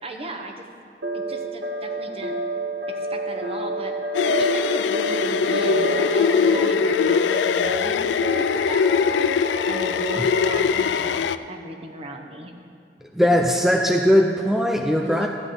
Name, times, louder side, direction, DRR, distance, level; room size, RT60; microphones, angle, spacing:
voice 1, 0.0-0.7 1.1-2.4 2.9-3.9 4.2-8.8 9.7-12.5 15.0-15.3, right 1 dB, 35° right, 3 dB, 0.9 m, -36 dB
sound 1, 1.0-10.6, equal, 70° right, 0.9 m, -29 dB
sound 2, 4.1-11.4, left 6 dB, 75° left, 0.3 m, -22 dB
voice 2, 13.1-15.3, equal, ahead, 1 dB, 0.4 m, -19 dB
14.0 x 9.8 x 3.8 m, 2.4 s
head